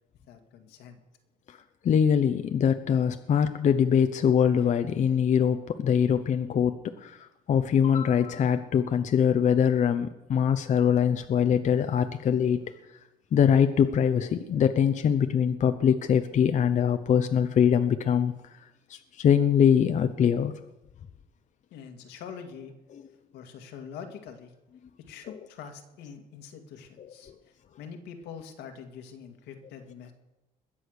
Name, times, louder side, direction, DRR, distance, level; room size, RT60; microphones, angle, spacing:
voice 1, 0.3-1.0 21.7-22.7 23.3-24.5 25.1-30.1, left 7 dB, 85° left, 6 dB, 2.1 m, -44 dB
voice 2, 1.8-12.6 13.3-18.3 18.9-20.5 27.0-27.1, left 8 dB, 45° left, 9 dB, 0.8 m, -23 dB
21.0 x 7.6 x 6.6 m, 0.97 s
cardioid pair, 110°, 17 cm